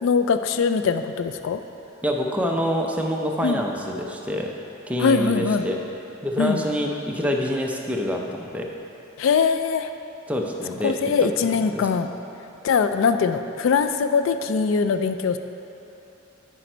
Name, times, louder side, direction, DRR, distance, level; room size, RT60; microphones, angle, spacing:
voice 1, 0.0-1.6 3.4-3.6 5.0-5.6 6.4-6.6 9.2-9.9 10.8-12.1 12.6-15.4, left 5 dB, 70° left, 10 dB, 0.3 m, -22 dB
voice 2, 2.0-4.5 4.9-5.8 6.2-8.7 10.3-10.9 11.2-11.3 11.7-11.9, equal, 5° right, 0 dB, 0.5 m, -26 dB
9.1 x 5.0 x 4.4 m, 2.8 s
head